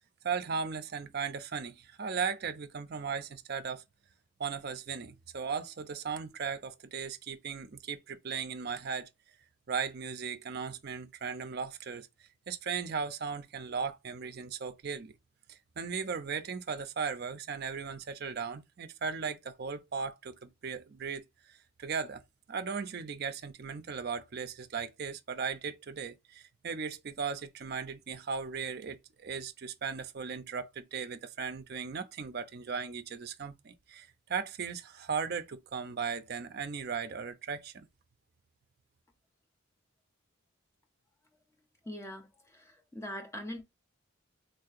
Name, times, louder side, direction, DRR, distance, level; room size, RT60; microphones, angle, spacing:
voice 1, 0.2-3.8 4.4-9.1 9.7-12.1 12.5-15.1 15.5-22.2 22.5-37.9, right 6 dB, 50° right, 0.4 m, -37 dB
voice 2, 41.9-43.6, equal, 15° left, 0.6 m, -42 dB
4.0 x 2.7 x 2.4 m
head